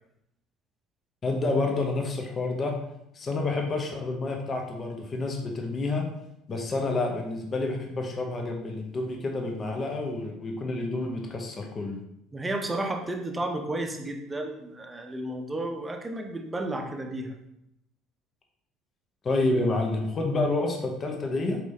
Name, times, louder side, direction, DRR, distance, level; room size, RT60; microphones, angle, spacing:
voice 1, 1.2-2.7 3.1-6.0 6.5-12.0 19.2-21.6, left 2 dB, 30° left, 2 dB, 0.7 m, -29 dB
voice 2, 12.3-17.3, right 1 dB, 20° right, 4 dB, 0.7 m, -32 dB
4.7 x 4.2 x 2.7 m, 0.81 s
figure-of-eight pair, 60°, 0 cm